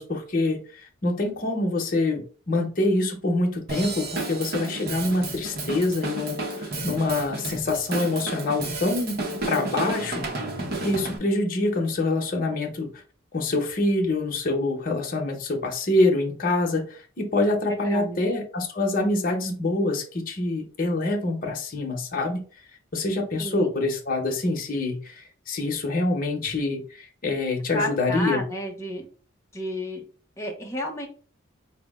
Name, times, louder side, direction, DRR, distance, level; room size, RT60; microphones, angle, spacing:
voice 1, 0.0-10.2 10.8-12.9 13.3-22.4 22.9-28.4, left 2 dB, 45° left, 1 dB, 0.8 m, -25 dB
Drum kit / Drum, 3.7-11.2, right 2 dB, 50° right, 0.7 m, -32 dB
voice 2, 17.7-18.2 23.4-23.7 27.7-29.0 29.5-30.0 30.4-31.1, left 1 dB, 15° left, 0 dB, 0.8 m, -31 dB
4.7 x 2.0 x 3.5 m, 0.40 s
head